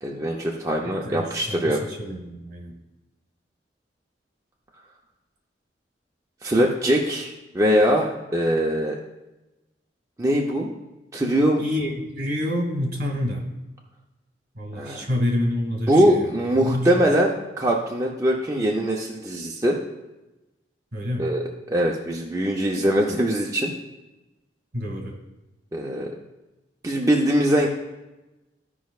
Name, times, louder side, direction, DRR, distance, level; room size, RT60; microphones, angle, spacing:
voice 1, 0.0-1.9 6.4-9.0 10.2-10.7 11.1-11.6 14.8-15.0 15.9-19.8 21.2-23.7 25.7-26.1 26.8-27.7, equal, 20° right, -2 dB, 0.6 m, -22 dB
voice 2, 0.8-2.8 11.6-13.4 14.6-16.9 20.9-21.3 24.7-25.2, left 1 dB, 55° right, 1 dB, 2.1 m, -28 dB
14.5 x 5.1 x 2.4 m, 1.0 s
head